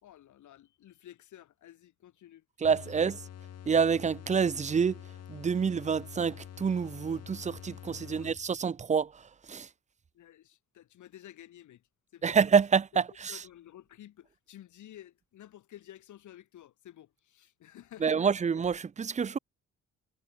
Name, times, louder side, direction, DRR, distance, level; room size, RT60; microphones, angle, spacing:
voice 1, 0.0-2.5 8.1-8.3 10.1-11.9 12.1-12.4 13.3-18.3, left 12 dB, 75° left, 5.2 m, -52 dB
sound 1, 2.6-8.7, left 10 dB, 55° left, 1.6 m, -47 dB
voice 2, 2.6-3.2 3.7-5.0 5.3-9.2 9.5-9.7 12.2-13.4 18.0-19.4, right 6 dB, 25° right, 0.5 m, -27 dB
cardioid pair, 90°, 30 cm